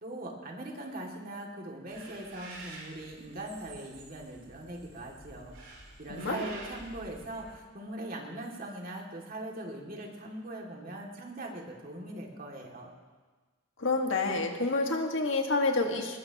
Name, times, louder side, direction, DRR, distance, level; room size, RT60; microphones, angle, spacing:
voice 1, 0.0-5.7 6.0-12.9, right 1 dB, 45° right, 0 dB, 2.4 m, -41 dB
sound 1, 1.9-7.5, right 2 dB, 80° right, 5.1 m, -49 dB
voice 2, 6.1-6.4 13.8-16.2, left 3 dB, 70° left, 3 dB, 1.8 m, -28 dB
20.5 x 19.5 x 3.0 m, 1.4 s
head